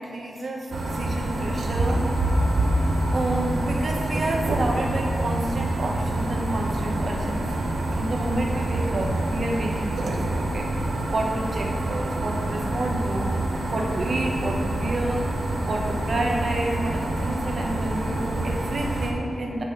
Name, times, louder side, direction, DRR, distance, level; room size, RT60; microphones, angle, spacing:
voice 1, 0.0-2.1 3.1-7.7 8.0-10.7 11.1-13.3 13.7-15.3 15.7-19.6, right 1 dB, 50° right, 0 dB, 1.1 m, -29 dB
sound 1, 0.7-19.1, right 1 dB, 85° right, 0.9 m, -26 dB
6.5 x 6.1 x 6.8 m, 2.8 s
wide cardioid pair, 175°, 0 cm